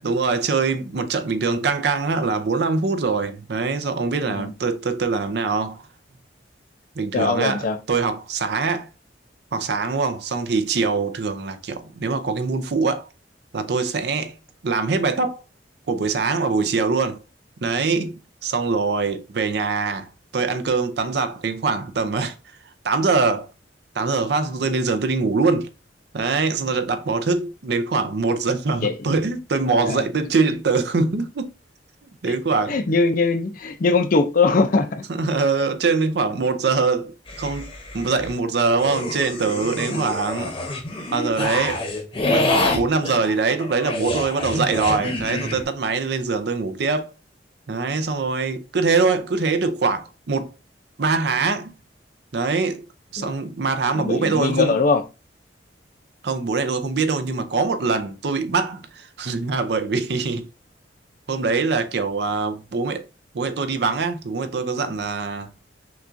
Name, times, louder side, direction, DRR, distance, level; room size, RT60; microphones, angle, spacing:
voice 1, 0.0-5.8 7.0-8.9 9.5-13.1 13.5-14.3 14.6-15.4 15.9-17.2 17.6-22.3 22.8-23.5 23.9-25.7 26.1-31.5 32.2-32.8 35.1-37.7 37.9-40.5 41.1-41.8 42.2-47.1 47.7-50.5 51.0-51.7 52.3-52.8 53.1-54.7 56.2-60.5 61.3-63.0 63.3-65.5, right 4 dB, 65° right, 0.5 m, -23 dB
voice 2, 7.1-7.8 28.8-28.9 29.9-30.0 32.7-35.0 39.9-40.1 53.2-53.3 54.0-55.0, left 4 dB, 50° left, 0.5 m, -21 dB
sound 1, 37.3-38.3 38.8-45.6, left 2 dB, 30° left, 0.9 m, -27 dB
5.9 x 2.4 x 2.6 m
head